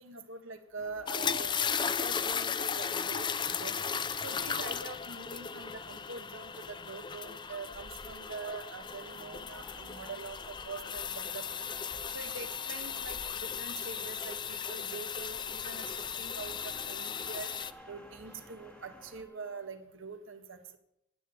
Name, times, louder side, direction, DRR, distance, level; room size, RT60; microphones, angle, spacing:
voice 1, 0.0-3.8 4.2-11.7 12.1-17.5 17.9-20.8, right 4 dB, 80° right, 7 dB, 1.5 m, -44 dB
sound 1, 0.8-19.2, equal, 5° left, 1.0 m, -55 dB
sound 2, 1.1-17.7, left 7 dB, 25° left, 0.4 m, -36 dB
sound 3, 11.6-19.8, right 3 dB, 60° right, 1.7 m, -61 dB
9.7 x 8.9 x 8.7 m, 0.79 s
head